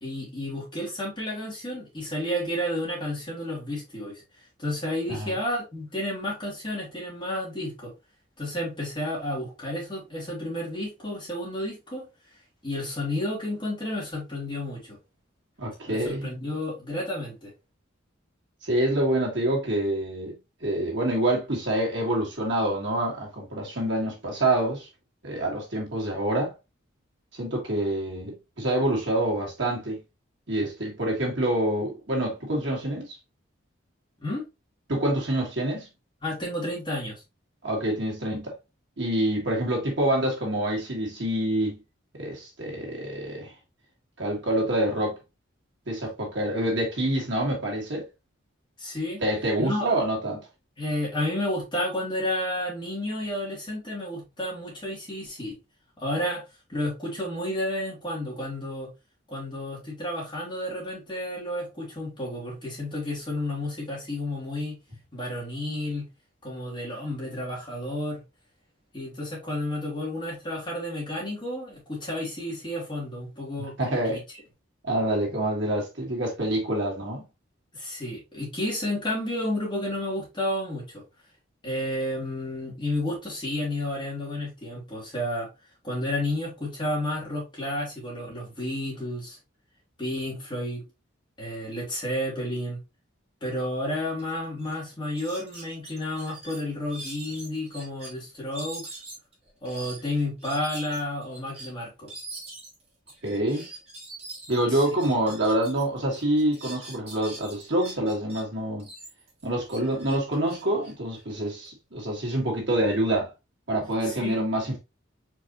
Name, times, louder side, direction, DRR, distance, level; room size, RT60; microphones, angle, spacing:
voice 1, 0.0-4.2 4.6-7.9 8.4-12.0 12.6-15.0 15.9-17.5 34.2-34.4 36.2-37.2 48.8-49.2 49.6-49.9 50.8-55.6 56.0-56.4 56.7-58.9 59.3-64.8 65.1-66.1 66.4-68.2 68.9-74.2 77.7-81.0 81.6-85.5 85.8-89.4 90.0-90.8 91.4-92.8 93.4-98.9 99.6-102.1 104.7-104.8 114.0-114.4, left 1 dB, 25° left, 2.4 m, -31 dB
voice 2, 15.6-16.3 18.6-24.9 25.2-26.5 27.4-30.0 30.5-33.2 34.9-35.9 37.6-38.5 39.0-41.8 42.1-43.5 44.2-45.2 45.9-48.0 49.2-50.5 73.6-74.2 74.8-77.2 103.2-103.6 104.5-108.9 109.4-113.3 113.7-114.8, right 1 dB, 65° right, 1.9 m, -26 dB
sound 1, 94.2-94.3 94.6-94.8 95.1-98.1 98.5-105.8 106.1-108.4 108.8-111.7, right 2 dB, 30° right, 1.8 m, -43 dB
4.7 x 4.2 x 2.7 m
head